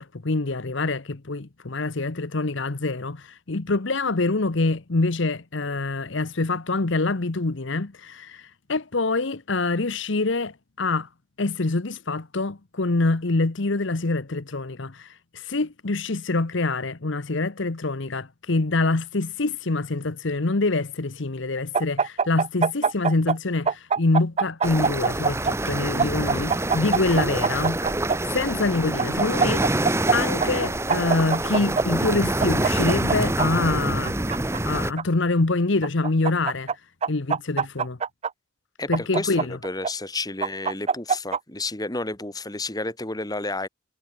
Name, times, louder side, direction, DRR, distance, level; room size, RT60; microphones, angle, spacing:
voice 1, 0.0-11.1 11.4-27.8 28.3-34.2 34.6-36.7 37.1-38.0 38.9-39.6, left 3 dB, 60° left, 1.0 m, -25 dB
sound 1, 21.7-23.4 23.7-25.5 26.0-28.2 29.0-30.1 30.4-30.5 30.9-31.8 32.4-33.5 34.0-35.0 35.8-36.7 37.0-38.3 38.9-39.9 40.4-41.4, right 5 dB, 30° right, 0.4 m, -23 dB
sound 2, 24.6-34.9, right 1 dB, 15° right, 1.0 m, -26 dB
voice 2, 26.0-26.5 38.8-43.7, left 2 dB, 20° left, 1.9 m, -31 dB
head